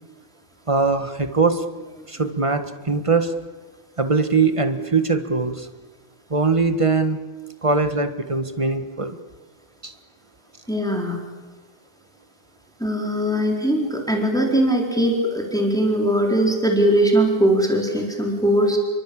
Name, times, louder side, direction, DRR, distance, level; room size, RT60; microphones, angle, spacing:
voice 1, 0.7-1.7 2.1-3.3 4.0-5.7 6.3-7.2 7.6-9.2 9.8-9.9, right 4 dB, 20° right, 9 dB, 1.4 m, -21 dB
voice 2, 10.7-11.2 12.8-18.8, right 1 dB, ahead, 1 dB, 4.2 m, -20 dB
28.0 x 23.5 x 8.7 m, 1.3 s
omnidirectional pair, 2.1 m